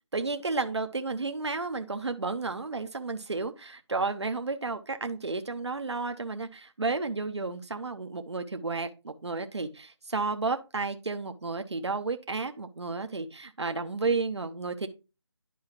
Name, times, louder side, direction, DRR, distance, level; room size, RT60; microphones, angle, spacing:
voice 1, 0.1-14.9, right 3 dB, 70° right, 7 dB, 1.0 m, -32 dB
11.0 x 4.7 x 3.0 m, 0.28 s
figure-of-eight pair, 160°, 15 cm